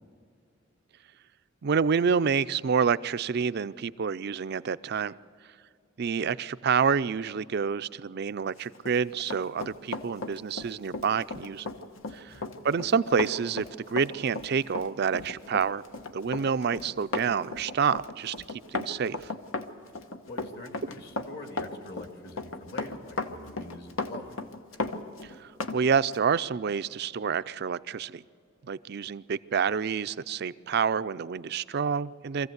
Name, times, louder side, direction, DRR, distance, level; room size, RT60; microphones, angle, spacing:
voice 1, 1.6-5.1 6.0-11.7 12.1-12.3 12.6-15.8 16.1-18.3 18.7-19.3 25.4-28.2 28.7-32.5, right 6 dB, 55° right, 15 dB, 0.4 m, -28 dB
Run, 8.7-25.8 26.1-26.3, left 3 dB, 85° left, 1.1 m, -36 dB
voice 2, 20.3-24.4, left 2 dB, 55° left, 5 dB, 2.3 m, -44 dB
23.5 x 15.0 x 8.0 m, 2.3 s
head